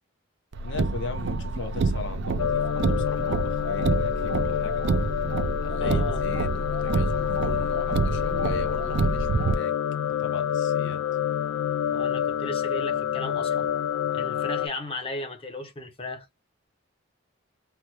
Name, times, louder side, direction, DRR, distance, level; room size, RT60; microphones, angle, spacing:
Car, 0.5-9.5, right 3 dB, 60° right, 0.4 m, -27 dB
voice 1, 0.6-4.9 5.6-9.7 10.0-11.0, left 3 dB, 60° left, 0.8 m, -38 dB
sound 1, 2.4-14.7, left 9 dB, 85° left, 0.4 m, -28 dB
voice 2, 5.8-6.2 11.9-13.7 14.1-16.3, left 1 dB, 25° left, 0.7 m, -36 dB
3.3 x 2.0 x 2.9 m
head